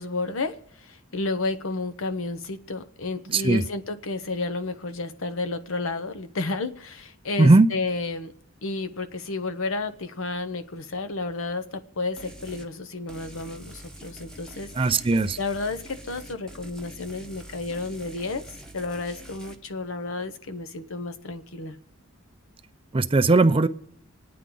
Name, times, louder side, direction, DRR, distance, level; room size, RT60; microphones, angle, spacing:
voice 1, 0.0-8.3 8.6-14.9 15.4-21.8, left 3 dB, 65° left, 10 dB, 0.8 m, -31 dB
voice 2, 3.3-3.6 7.4-7.7 14.8-15.4 22.9-23.7, right 3 dB, 25° right, 10 dB, 0.5 m, -18 dB
sound 1, 12.2-12.7 13.1-19.6, right 1 dB, 5° left, 1.0 m, -45 dB
27.0 x 9.5 x 3.8 m, 0.71 s
head